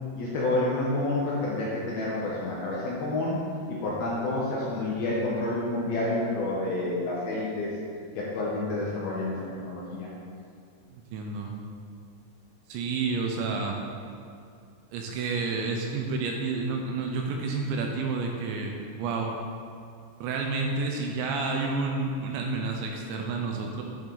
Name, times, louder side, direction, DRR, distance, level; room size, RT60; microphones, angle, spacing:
voice 1, 0.1-7.7 8.2-10.1, left 2 dB, 70° left, -6 dB, 2.5 m, -29 dB
voice 2, 10.9-11.5 12.7-13.8 14.9-18.7 19.0-19.3 20.2-23.8, right 4 dB, 80° right, 1 dB, 2.8 m, -30 dB
9.7 x 7.4 x 3.9 m, 2.4 s
omnidirectional pair, 5.5 m